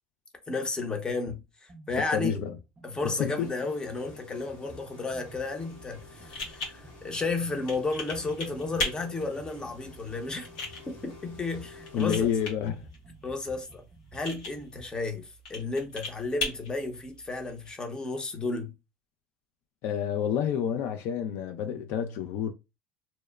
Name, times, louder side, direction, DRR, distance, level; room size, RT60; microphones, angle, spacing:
voice 1, 0.5-2.3 2.8-10.5 10.9-12.3 13.2-13.8 14.1-18.7, left 3 dB, 20° left, 0.7 m, -33 dB
sound 1, 1.3-1.4 1.7-15.0, equal, 25° right, 0.6 m, -52 dB
voice 2, 2.1-2.5 3.2-3.5 11.9-12.8 19.8-22.5, left 8 dB, 65° left, 0.3 m, -29 dB
sound 2, 3.2-12.5, left 4 dB, 45° left, 0.9 m, -51 dB
sound 3, 5.7-17.7, left 2 dB, 90° left, 1.2 m, -39 dB
2.8 x 2.1 x 2.3 m
supercardioid pair, 110°, 4 cm